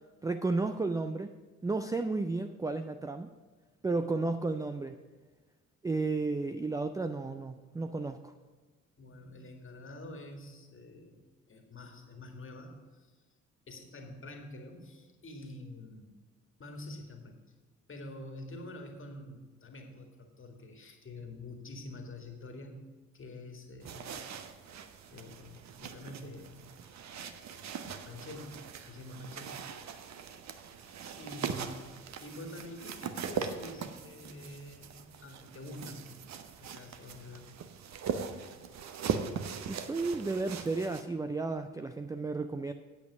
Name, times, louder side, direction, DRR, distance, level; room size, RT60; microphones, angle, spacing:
voice 1, 0.2-1.4 1.6-3.3 3.8-5.0 5.8-8.3 39.7-42.7, right 3 dB, 10° right, 8 dB, 0.4 m, -33 dB
voice 2, 9.0-13.1 13.7-16.2 16.6-17.4 17.9-22.8 23.1-24.2 25.1-26.6 28.0-28.6 28.8-29.6 30.6-36.1 36.6-37.5, left 1 dB, 30° left, 4 dB, 1.9 m, -47 dB
sound 1, 23.8-41.0, right 7 dB, 45° right, 0.9 m, -40 dB
8.5 x 8.4 x 6.0 m, 1.3 s
figure-of-eight pair, 45°, 39 cm